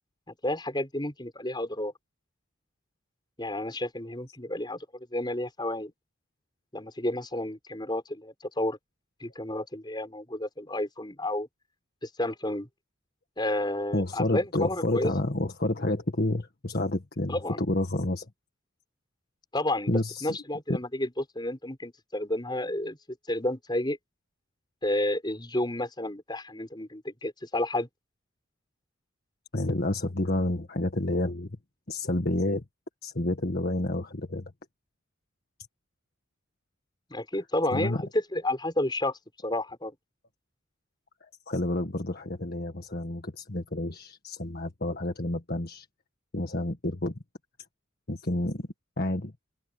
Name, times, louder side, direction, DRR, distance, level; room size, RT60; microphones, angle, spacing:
voice 1, 0.4-1.9 3.4-4.9 5.1-5.9 6.7-8.8 9.2-11.5 12.0-12.7 13.4-15.1 17.3-17.6 19.5-24.0 24.8-27.9 37.1-39.9, left 1 dB, 20° left, 6.0 m, -31 dB
voice 2, 13.9-18.3 19.9-20.4 20.7-20.8 29.5-31.5 31.9-32.6 33.0-34.5 37.7-38.0 41.2-45.9 46.3-47.2 48.1-48.7 49.0-49.3, left 1 dB, 50° left, 1.7 m, -29 dB
head